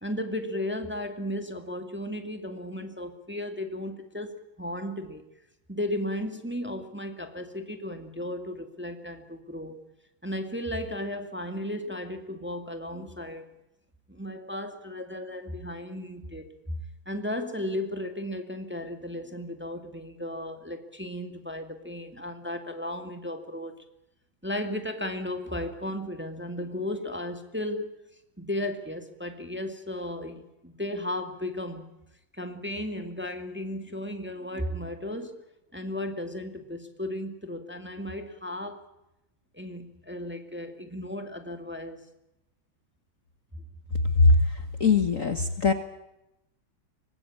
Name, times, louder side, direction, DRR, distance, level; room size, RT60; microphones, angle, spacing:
voice 1, 0.0-5.2 5.7-9.7 10.2-13.5 14.1-23.7 24.4-27.9 28.4-31.9 32.3-35.4 35.7-38.8 39.5-42.1, left 1 dB, 5° right, 6 dB, 2.0 m, -35 dB
voice 2, 44.8-45.7, left 3 dB, 40° left, 8 dB, 1.6 m, -20 dB
24.5 x 20.0 x 8.7 m, 0.88 s
omnidirectional pair, 2.3 m